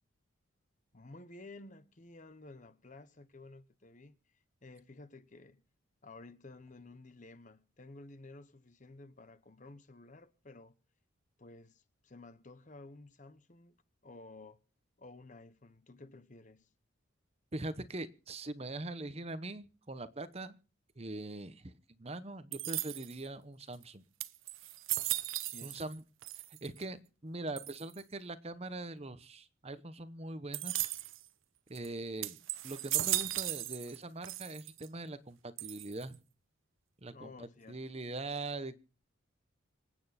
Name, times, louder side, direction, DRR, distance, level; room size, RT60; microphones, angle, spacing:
voice 1, 0.9-5.6 6.0-10.7 11.4-13.8 14.0-14.6 15.0-16.7 25.5-25.9 37.1-37.9, left 2 dB, 40° left, 1.0 m, -53 dB
voice 2, 17.5-20.6 21.0-21.7 22.0-24.0 25.6-26.0 26.6-30.9 31.7-32.4 32.6-36.2 37.0-38.7, right 2 dB, 30° right, 0.9 m, -42 dB
sound 1, 22.5-23.3 23.8-23.9 24.2-25.9 26.2-26.8 27.6-28.0 30.5-31.2 31.7-31.9 32.2-34.0 34.2-34.9 35.6-36.1, right 16 dB, 80° right, 0.8 m, -36 dB
26.0 x 9.1 x 4.2 m
head